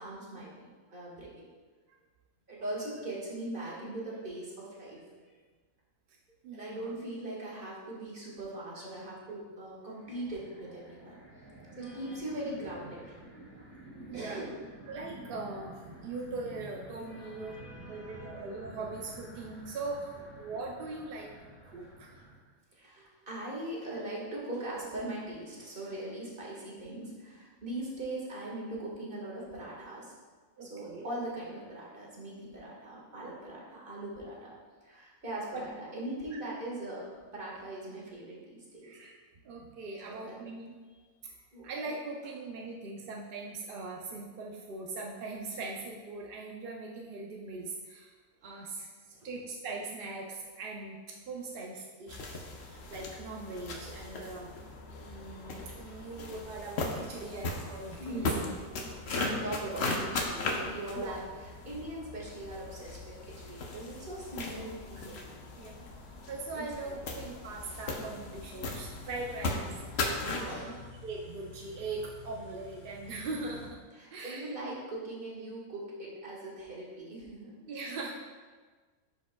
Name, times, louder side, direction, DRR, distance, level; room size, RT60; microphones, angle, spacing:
voice 1, 0.0-1.5 2.5-5.3 6.5-13.2 14.1-14.6 17.1-18.4 22.7-30.1 30.6-34.5 34.8-38.9 40.1-40.4 41.5-41.7 48.4-48.6 49.1-49.3 58.0-58.6 59.3-65.4 66.6-67.0 70.4-70.9 74.0-77.8, right 1 dB, 40° right, -5 dB, 1.7 m, -41 dB
voice 2, 6.4-6.9 11.7-12.2 14.1-14.4 14.9-17.6 17.9-21.3 21.6-22.3 30.6-31.1 35.5-35.7 36.3-36.4 38.8-39.2 39.4-40.8 41.2-41.4 41.6-48.2 48.4-54.5 55.0-58.4 59.0-59.4 61.0-61.2 64.9-65.2 65.5-66.0 66.3-70.8 71.0-73.8 74.1-74.6 77.6-78.1, right 3 dB, 60° right, -1 dB, 0.6 m, -41 dB
sound 1, 9.9-22.3, right 1 dB, 75° right, 2.2 m, -51 dB
sound 2, 52.1-70.6, left 2 dB, 55° left, 0.9 m, -38 dB
Car / Idling, 68.6-73.7, left 2 dB, 80° left, 1.7 m, -50 dB
11.0 x 4.8 x 2.2 m, 1.4 s
omnidirectional pair, 1.5 m